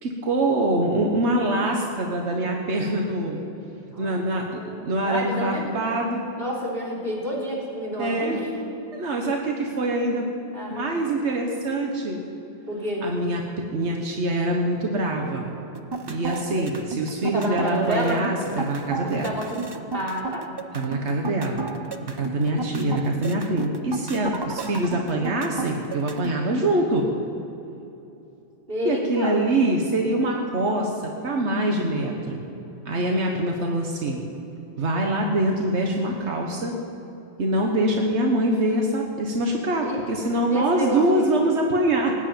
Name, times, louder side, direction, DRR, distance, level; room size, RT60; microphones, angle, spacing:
voice 1, 0.0-3.4 4.0-4.4 4.8-6.2 8.0-8.4 8.9-10.3 10.7-12.2 13.0-13.4 13.7-15.5 16.1-19.3 20.7-21.7 22.0-27.1 28.8-30.9 31.2-32.4 32.8-34.2 34.8-36.7 37.4-42.1, right 1 dB, 90° right, 1 dB, 1.6 m, -24 dB
voice 2, 3.9-5.7 6.4-8.5 10.5-11.0 12.7-13.1 17.3-18.2 19.0-19.6 19.9-20.5 28.7-29.4 39.8-40.0 40.5-41.2, equal, 55° right, -3 dB, 3.4 m, -29 dB
sound 1, 15.7-26.3, right 3 dB, 25° right, 0.7 m, -32 dB
18.5 x 8.1 x 9.0 m, 2.9 s
omnidirectional pair, 1.1 m